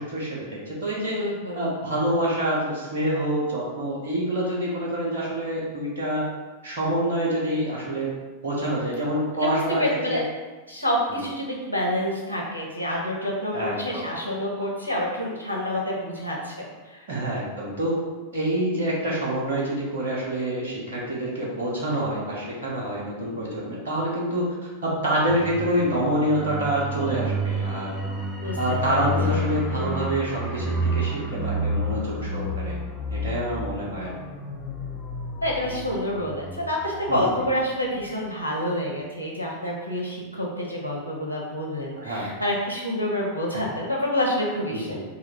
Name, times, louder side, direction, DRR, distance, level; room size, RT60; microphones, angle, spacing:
voice 1, 0.0-1.2 1.5-6.3 6.6-8.1 8.4-9.8 10.1-10.2 11.1-11.2 13.5-14.0 17.1-18.0 18.3-24.5 24.8-28.0 28.6-32.8 33.1-34.1 37.1-37.3 41.9-42.3 43.5-43.6 44.7-45.0, right 1 dB, 65° right, -5 dB, 1.1 m, -27 dB
voice 2, 1.0-1.7 9.3-10.3 10.7-17.1 28.4-28.6 28.8-29.4 35.4-45.0, left 1 dB, 85° right, -2 dB, 1.0 m, -28 dB
sound 1, 25.3-37.6 37.9-38.1, equal, 5° right, 0.7 m, -30 dB
4.1 x 2.5 x 4.3 m, 1.2 s
figure-of-eight pair, 90°, 0 cm